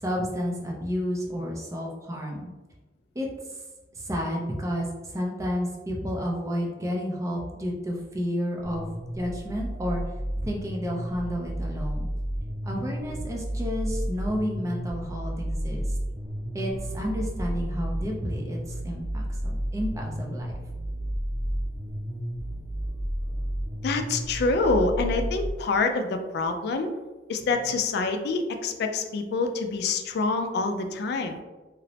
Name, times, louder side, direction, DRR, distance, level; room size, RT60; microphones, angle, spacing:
voice 1, 0.0-2.5 3.2-3.3 4.0-4.9 5.1-8.9 9.2-10.0 10.4-12.1 12.6-15.8 16.5-18.6 18.8-20.5, equal, 15° right, -1 dB, 0.4 m, -31 dB
sound 1, 8.6-25.5, equal, 10° left, 0.7 m, -32 dB
voice 2, 23.8-26.9 27.3-31.4, left 3 dB, 60° left, 6 dB, 0.3 m, -26 dB
2.9 x 2.0 x 2.7 m, 1.2 s
head